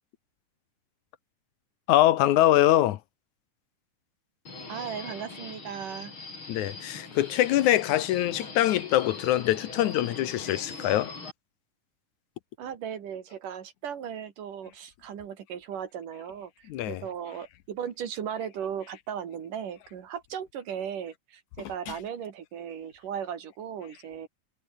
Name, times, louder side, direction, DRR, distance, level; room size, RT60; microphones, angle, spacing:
voice 1, 1.9-3.0 6.5-11.1 16.7-17.0 21.6-22.0, left 14 dB, 70° left, 2.1 m, -24 dB
Subway metro underground, 4.5-11.3, left 3 dB, 35° left, 5.9 m, -41 dB
voice 2, 4.7-6.1 12.6-24.3, right 8 dB, 70° right, 3.8 m, -37 dB
omnidirectional pair, 3.9 m